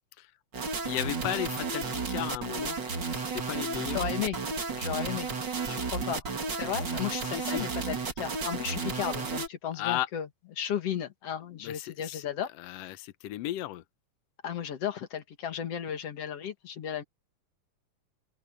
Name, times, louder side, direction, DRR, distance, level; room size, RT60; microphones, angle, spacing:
sound 1, 0.5-9.5, right 4 dB, 35° right, 2.5 m, -33 dB
voice 1, 0.8-4.1 7.2-7.7 9.7-10.1 11.5-12.3 12.6-13.8, left 14 dB, 85° left, 1.4 m, -35 dB
voice 2, 3.9-4.4 4.7-5.3 5.7-6.2 6.5-10.3 10.6-12.5 14.4-17.0, left 9 dB, 50° left, 2.5 m, -34 dB
open air
omnidirectional pair, 4.0 m